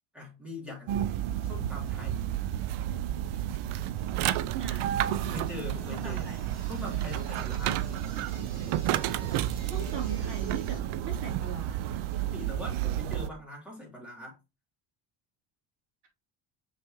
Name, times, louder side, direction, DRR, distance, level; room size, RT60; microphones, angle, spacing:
voice 1, 0.1-1.1 1.4-2.4 5.2-6.4 6.7-7.9 12.1-14.4, left 2 dB, ahead, 3.8 m, -42 dB
sound 1, 0.9-13.3, right 12 dB, 80° right, 0.7 m, -31 dB
sound 2, 3.1-10.8, right 2 dB, 30° right, 2.2 m, -51 dB
voice 2, 4.6-4.9 5.2-5.4 5.8-6.4 9.6-12.0, right 5 dB, 55° right, 3.8 m, -40 dB
6.6 x 5.9 x 3.0 m
cardioid pair, 175°, 48 cm